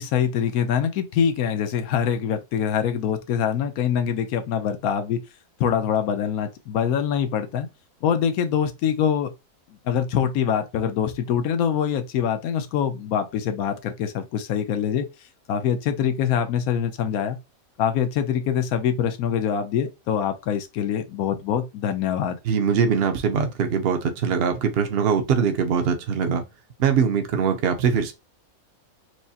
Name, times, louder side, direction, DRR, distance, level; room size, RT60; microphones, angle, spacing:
voice 1, 0.0-5.2 5.6-7.7 8.0-9.3 9.8-15.1 15.5-17.4 17.8-22.4, left 8 dB, 85° left, 1.1 m, -24 dB
voice 2, 22.4-26.4 26.8-28.1, right 6 dB, 55° right, 0.7 m, -22 dB
4.7 x 2.1 x 2.7 m
omnidirectional pair, 1.5 m